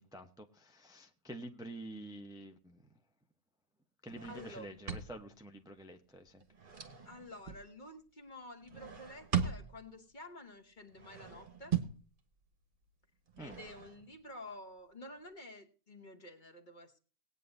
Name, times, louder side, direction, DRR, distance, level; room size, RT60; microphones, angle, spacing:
voice 1, 0.0-2.8 4.0-6.4 13.4-13.6, right 1 dB, 5° right, 0.4 m, -48 dB
sound 1, 4.1-5.6 6.3-7.6 8.6-10.0 10.9-12.1 13.3-14.2, right 8 dB, 35° right, 1.2 m, -39 dB
voice 2, 4.3-4.7 7.0-11.8 13.4-17.0, left 1 dB, 30° left, 1.1 m, -50 dB
19.0 x 9.2 x 2.6 m
omnidirectional pair, 1.8 m